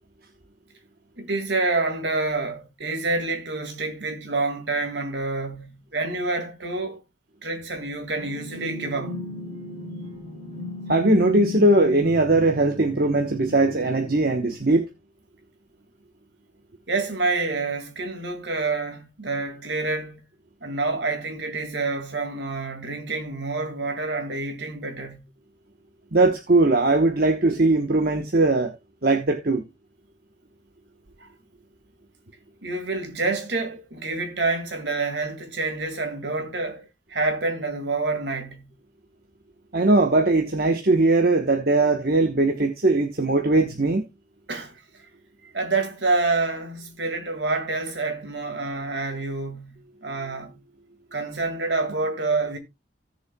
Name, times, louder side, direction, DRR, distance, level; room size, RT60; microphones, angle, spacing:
voice 1, 1.2-7.0 7.4-9.3 16.9-20.2 20.6-25.3 31.2-31.3 32.6-38.7 43.6-43.8 44.5-44.8 45.5-50.5 51.1-52.6, right 3 dB, 70° right, 2.1 m, -28 dB
sound 1, 8.2-14.6, left 1 dB, 30° right, 5.7 m, -36 dB
voice 2, 10.9-14.9 26.1-28.7 29.0-29.6 39.7-44.0, right 2 dB, 50° right, 1.1 m, -20 dB
17.5 x 6.8 x 2.2 m
head